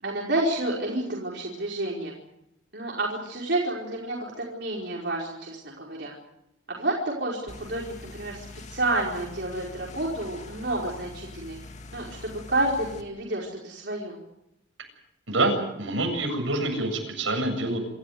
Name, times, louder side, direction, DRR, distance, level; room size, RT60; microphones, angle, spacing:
voice 1, 0.0-2.1 2.7-6.1 6.7-8.4 8.7-11.6 11.9-14.2, right 2 dB, 60° right, -3 dB, 4.9 m, -29 dB
sound 1, 7.5-13.0, left 2 dB, 35° left, 2.3 m, -44 dB
voice 2, 15.3-17.8, right 2 dB, 85° right, 3 dB, 7.7 m, -26 dB
27.0 x 15.0 x 9.4 m, 0.83 s
head